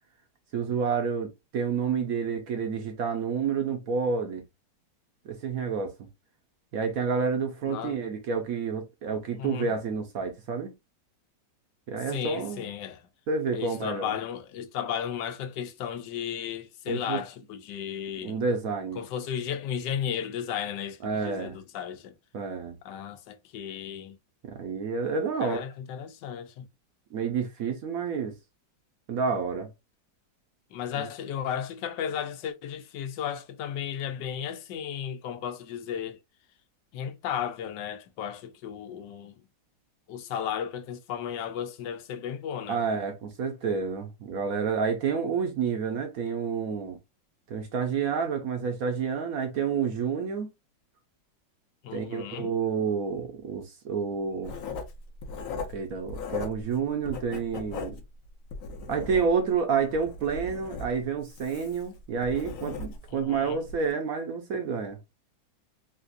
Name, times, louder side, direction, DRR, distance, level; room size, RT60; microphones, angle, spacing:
voice 1, 0.5-4.4 5.2-6.1 6.7-10.7 11.9-12.7 13.3-14.1 16.9-17.2 18.2-19.0 21.0-21.6 22.3-22.8 24.4-25.6 27.1-28.3 29.1-29.7 30.9-31.1 42.7-47.0 47.5-50.5 51.9-54.5 55.7-58.0 58.9-65.0, right 5 dB, 60° right, 1.0 m, -29 dB
voice 2, 7.7-8.0 9.4-9.7 12.1-13.1 13.5-18.4 18.9-22.2 22.8-24.2 25.4-26.7 30.7-36.2 36.9-39.4 40.1-42.8 51.8-52.5 63.1-63.6, left 9 dB, 80° left, 1.3 m, -34 dB
Writing, 54.4-56.8 57.0-59.5 59.9-63.2 63.6-63.8, left 4 dB, 60° left, 0.9 m, -38 dB
4.0 x 2.5 x 2.5 m
omnidirectional pair, 1.9 m